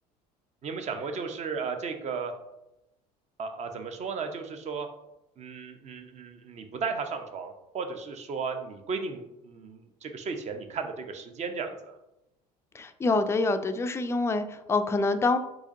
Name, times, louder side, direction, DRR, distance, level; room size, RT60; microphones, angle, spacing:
voice 1, 0.6-2.3 3.4-4.9 5.4-11.9, right 5 dB, 35° right, 6 dB, 0.7 m, -35 dB
voice 2, 12.7-15.4, left 3 dB, 10° left, 9 dB, 0.4 m, -26 dB
4.8 x 4.3 x 2.6 m, 0.91 s
figure-of-eight pair, 60°, 21 cm